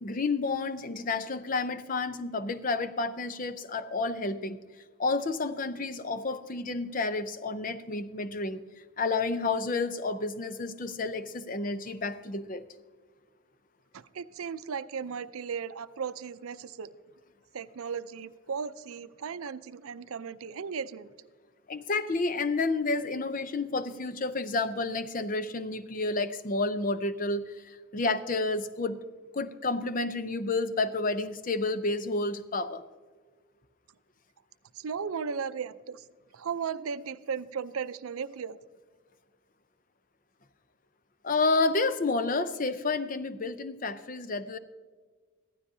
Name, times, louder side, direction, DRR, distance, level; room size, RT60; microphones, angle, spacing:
voice 1, 0.0-4.6 5.0-8.6 9.0-12.7 21.7-29.0 29.3-32.8 41.2-44.6, left 3 dB, 40° left, 12 dB, 0.5 m, -30 dB
voice 2, 13.9-16.9 17.5-21.1 34.7-36.1 36.3-38.6, right 6 dB, 85° right, 14 dB, 0.5 m, -36 dB
15.0 x 12.5 x 2.7 m, 1.5 s
head